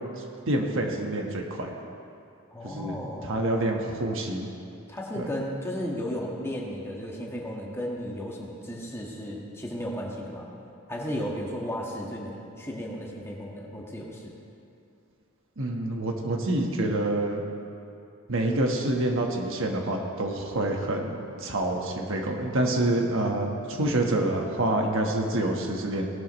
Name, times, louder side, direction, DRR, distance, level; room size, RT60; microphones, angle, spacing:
voice 1, 0.2-1.7 2.6-4.5 5.2-5.3 15.6-17.4 18.3-26.1, right 1 dB, 65° right, 2 dB, 1.3 m, -27 dB
voice 2, 2.5-3.4 4.9-10.5 10.9-14.3, equal, 10° left, -2 dB, 1.5 m, -34 dB
18.0 x 12.0 x 3.1 m, 2.7 s
head